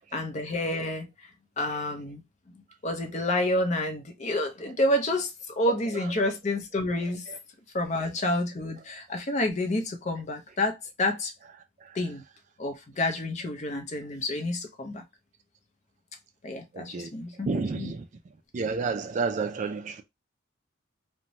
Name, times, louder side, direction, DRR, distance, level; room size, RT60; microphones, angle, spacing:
voice 1, 0.1-1.1 1.6-2.2 2.8-7.2 7.7-11.3 11.9-12.2 12.6-15.0 16.4-17.5 17.8-17.9, left 1 dB, 35° left, 0.5 m, -29 dB
voice 2, 16.7-17.1 17.5-18.1 18.5-20.0, right 4 dB, 40° right, 0.3 m, -30 dB
2.6 x 2.1 x 2.9 m
head